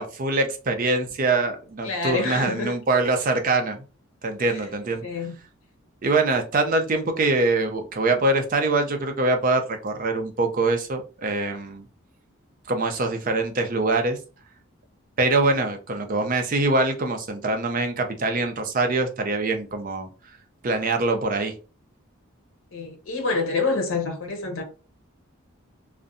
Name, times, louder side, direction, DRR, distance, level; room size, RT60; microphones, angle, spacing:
voice 1, 0.0-3.8 4.2-5.0 6.0-11.8 12.7-14.2 15.2-20.1 20.6-21.5, right 2 dB, 40° right, 0.4 m, -24 dB
voice 2, 1.8-2.7 4.4-4.6 5.0-5.3 22.7-24.6, left 3 dB, 70° left, 0.8 m, -27 dB
2.6 x 2.1 x 2.5 m
head